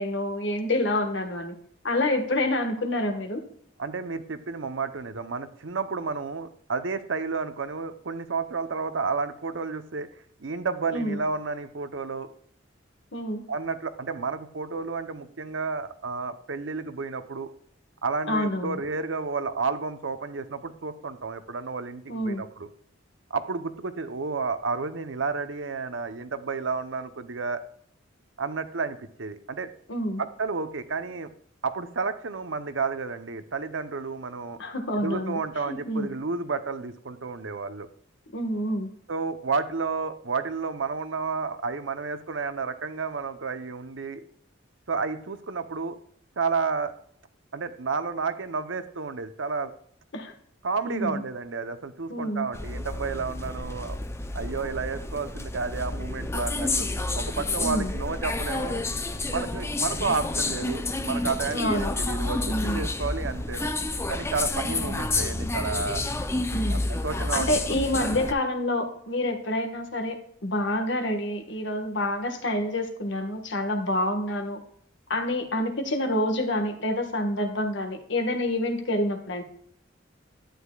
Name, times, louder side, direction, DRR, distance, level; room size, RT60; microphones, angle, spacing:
voice 1, 0.0-1.5 1.8-3.4 10.9-11.2 13.1-13.4 18.3-18.8 22.1-22.4 29.9-30.2 34.6-35.4 35.7-36.1 38.3-38.9 50.1-50.3 50.8-51.2 52.1-52.5 57.6-57.9 61.5-61.9 62.5-62.8 66.5-66.8 67.3-74.6 75.1-79.4, left 1 dB, 65° left, 5 dB, 1.5 m, -27 dB
voice 2, 3.8-10.1 10.4-12.3 13.5-17.5 18.0-22.7 23.3-27.6 28.4-29.7 30.2-31.3 31.6-34.6 34.9-37.9 39.1-44.2 44.9-46.0 46.4-46.9 47.5-49.7 50.6-54.0 54.3-56.9 57.1-58.8 59.3-63.7 64.1-66.0 66.7-67.5, right 4 dB, 70° right, 11 dB, 0.8 m, -31 dB
sound 1, 52.5-68.3, left 2 dB, 15° left, 0.5 m, -30 dB
11.5 x 9.4 x 2.3 m, 0.66 s
head